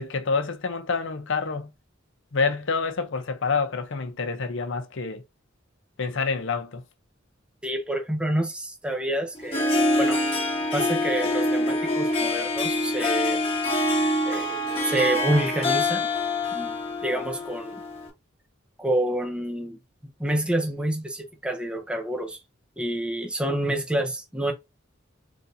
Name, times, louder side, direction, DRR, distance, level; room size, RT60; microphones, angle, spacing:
voice 1, 0.0-1.7 2.3-5.2 6.0-6.8, left 4 dB, 65° left, 0.7 m, -27 dB
voice 2, 7.6-10.2 10.7-13.4 14.3-16.1 16.5-17.8 18.8-19.8 20.2-22.4 22.8-24.5, right 1 dB, 5° right, 0.6 m, -28 dB
Harp, 9.4-18.1, left 1 dB, 30° left, 1.2 m, -25 dB
4.0 x 3.3 x 2.6 m
head